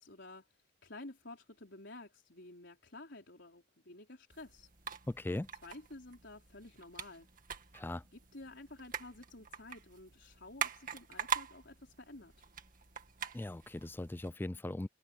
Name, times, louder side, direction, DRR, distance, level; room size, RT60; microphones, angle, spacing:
voice 1, 0.0-4.7 5.6-7.3 8.1-12.5, left 2 dB, 70° left, 4.5 m, -52 dB
sound 1, 4.3-14.3, right 7 dB, 45° right, 2.0 m, -44 dB
voice 2, 5.1-5.5 7.7-8.0 13.3-14.9, left 1 dB, 10° left, 0.3 m, -39 dB
head